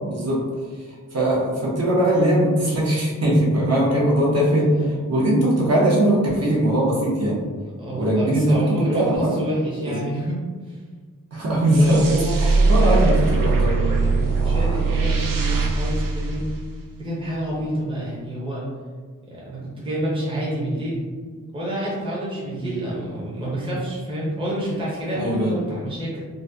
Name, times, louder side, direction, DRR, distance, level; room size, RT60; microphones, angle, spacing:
voice 1, 0.0-0.4 1.1-4.7 5.1-7.4 7.9-8.6 8.9-9.3 11.3-12.0 12.4-13.8 22.6-22.7 25.1-25.6, right 1 dB, 50° right, -5 dB, 0.8 m, -20 dB
voice 2, 7.8-10.4 10.7-10.8 11.7-16.5 17.0-18.6 19.3-21.0 21.5-26.2, right 1 dB, 15° right, -6 dB, 0.7 m, -28 dB
sound 1, 11.7-17.1, right 3 dB, 75° right, 0.5 m, -21 dB
3.8 x 2.2 x 2.7 m, 1.5 s
wide cardioid pair, 165°, 33 cm